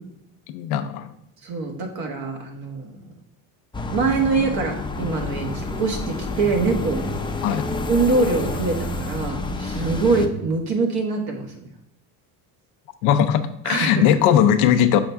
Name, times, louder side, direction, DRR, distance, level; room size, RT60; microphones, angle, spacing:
voice 1, 0.5-1.1 7.4-7.6 13.0-15.0, left 9 dB, 85° left, 9 dB, 0.7 m, -19 dB
voice 2, 1.4-3.0 3.9-7.0 7.9-11.5 13.6-14.1, right 3 dB, 60° right, 3 dB, 1.4 m, -24 dB
sound 1, 3.7-10.3, left 2 dB, 10° left, 0.5 m, -29 dB
6.3 x 4.5 x 3.5 m, 0.81 s
supercardioid pair, 95°, 41 cm